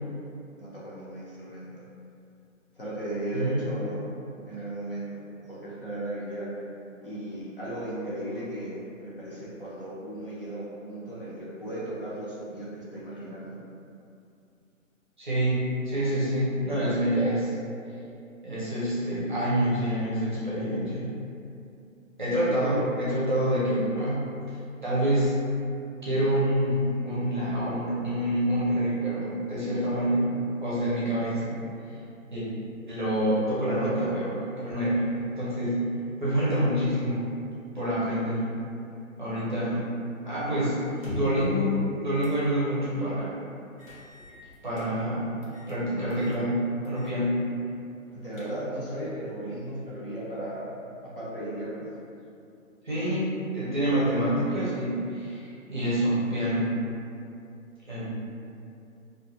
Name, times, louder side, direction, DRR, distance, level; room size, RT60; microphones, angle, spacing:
voice 1, 0.6-1.7 2.8-4.0 4.5-6.5 7.0-13.6 39.6-39.8 48.1-50.7 51.0-51.8, right 1 dB, 45° left, -8 dB, 0.5 m, -36 dB
voice 2, 3.3-3.7 15.2-17.5 18.4-21.1 22.2-24.2 24.8-25.3 26.0-30.3 30.6-31.5 32.3-32.4 32.9-35.0 35.4-35.8 36.2-37.2 37.7-38.5 39.2-39.9 40.2-40.8 41.1-43.3 44.6-45.3 45.7-46.6 46.8-47.4 52.8-56.7 57.9-58.1, equal, 35° right, -9 dB, 0.6 m, -27 dB
sound 1, 40.9-41.5 42.2-42.4 42.8-42.9 43.8-44.9 45.4-45.8 46.1-46.4 46.8-47.2 47.5-47.6 48.1-48.8, equal, 85° left, 1.0 m, -42 dB
2.5 x 2.1 x 2.5 m, 2.5 s
hypercardioid pair, 170°, 41 cm